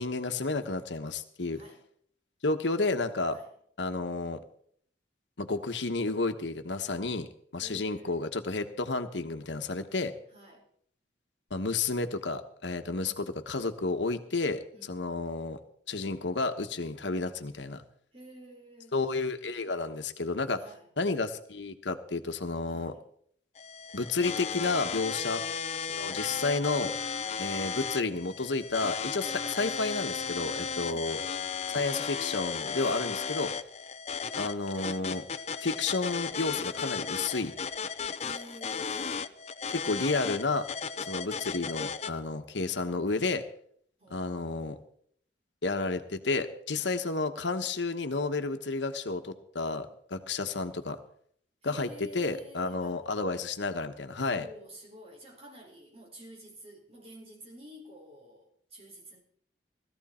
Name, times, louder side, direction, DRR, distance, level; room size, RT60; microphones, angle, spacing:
voice 1, 0.0-1.6 2.4-3.4 3.8-4.4 5.4-10.1 11.5-14.6 14.9-15.6 15.9-17.8 18.9-20.6 21.0-22.9 23.9-25.4 25.9-26.9 27.4-31.2 31.7-33.5 34.4-35.2 35.6-37.5 39.7-40.7 41.1-43.4 44.1-44.8 45.6-51.0 51.6-51.9 52.1-54.5, left 3 dB, 85° left, 8 dB, 1.1 m, -31 dB
voice 2, 1.5-1.9 3.3-3.5 7.6-8.4 10.3-10.6 14.7-15.1 18.1-19.0 20.5-20.9 22.6-23.0 25.1-25.4 27.2-27.7 30.8-31.5 32.7-33.1 38.2-39.3 44.0-44.6 46.7-47.0 51.6-53.0 54.3-59.2, equal, 35° right, 0 dB, 3.8 m, -50 dB
sound 1, 23.6-42.1, left 6 dB, 35° left, 0.5 m, -35 dB
17.0 x 13.5 x 4.3 m, 0.64 s
head